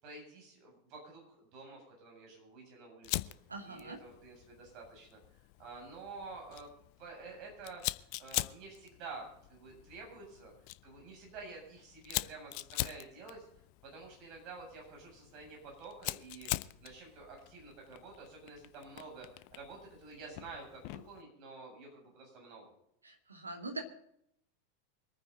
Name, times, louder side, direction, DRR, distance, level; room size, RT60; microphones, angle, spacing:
voice 1, 0.0-3.3 3.6-6.7 7.0-10.5 10.8-13.5 13.8-16.5 16.8-22.7, right 3 dB, 40° right, 0 dB, 7.5 m, -50 dB
Fire, 3.0-21.2, left 20 dB, 45° left, 0.5 m, -43 dB
voice 2, 3.5-4.0 23.0-23.8, right 2 dB, 80° right, 4 dB, 2.5 m, -43 dB
25.0 x 9.6 x 4.0 m, 0.75 s
figure-of-eight pair, 85°, 0 cm